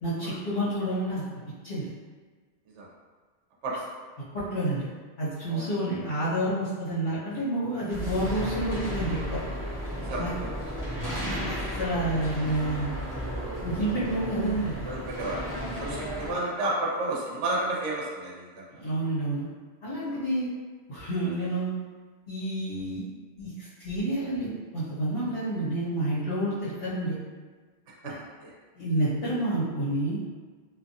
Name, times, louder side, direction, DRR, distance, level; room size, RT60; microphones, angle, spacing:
voice 1, 0.0-1.2 1.6-1.9 4.3-4.9 5.2-9.4 10.2-10.3 11.0-12.9 13.6-14.9 18.7-19.4 19.8-20.5 20.9-21.7 22.3-23.0 23.4-27.2 28.7-30.2, right 1 dB, 65° left, -12 dB, 1.4 m, -29 dB
sound 1, 7.9-16.3, equal, 20° left, 0.6 m, -34 dB
voice 2, 10.0-10.6 14.8-18.9 20.0-20.2 28.0-28.1 28.4-28.5, right 2 dB, 75° right, -5 dB, 0.9 m, -32 dB
2.8 x 2.3 x 2.7 m, 1.4 s
omnidirectional pair, 1.2 m